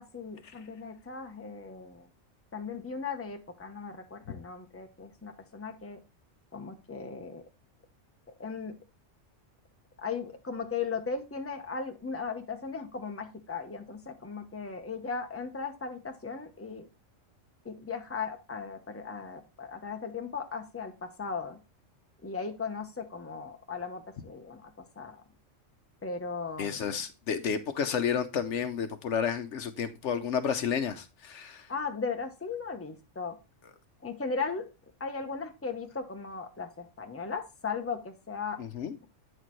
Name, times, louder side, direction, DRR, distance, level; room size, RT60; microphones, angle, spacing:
voice 1, 0.0-2.1 2.5-6.0 6.5-7.4 8.4-8.8 10.0-16.9 17.6-21.6 22.2-24.7 25.0-25.2 26.0-26.9 31.7-33.4 34.0-34.7 35.0-38.6, left 5 dB, 10° left, 0.9 m, -37 dB
voice 2, 26.6-31.7 38.6-39.0, left 7 dB, 70° left, 1.1 m, -31 dB
8.8 x 6.4 x 3.1 m
omnidirectional pair, 1.3 m